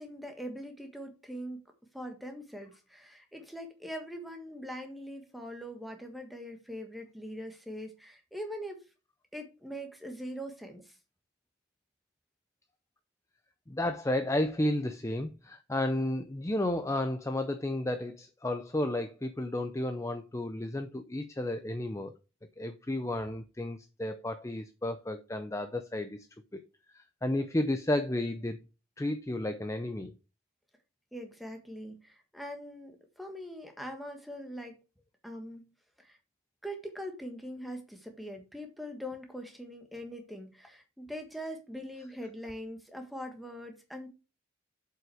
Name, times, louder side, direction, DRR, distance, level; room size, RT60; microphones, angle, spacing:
voice 1, 0.0-1.6 1.9-8.8 9.3-10.9 31.1-34.8 35.2-35.7 36.0-36.2 36.6-44.1, equal, ahead, 1.5 m, -42 dB
voice 2, 13.7-22.1 22.6-26.3 26.5-26.6 26.9-28.6 29.0-30.1, left 1 dB, 15° left, 0.5 m, -32 dB
7.6 x 5.6 x 4.8 m
head